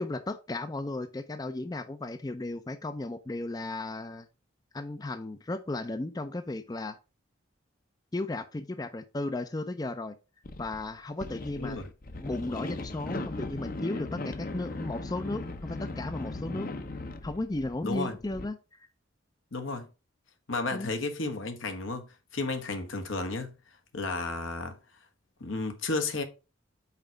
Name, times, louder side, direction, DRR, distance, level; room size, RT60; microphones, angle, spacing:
voice 1, 0.0-4.3 4.7-7.0 8.1-10.1 10.6-11.8 12.2-16.7 17.2-18.6 20.7-20.9, left 2 dB, 20° left, 0.4 m, -35 dB
sound 1, 10.4-10.9 11.2-18.5, left 2 dB, 45° left, 0.7 m, -38 dB
voice 2, 11.6-11.9 17.8-18.2 19.5-19.9 20.5-23.5 23.9-24.8 25.4-26.2, left 3 dB, 80° left, 1.3 m, -33 dB
5.8 x 4.6 x 5.0 m
head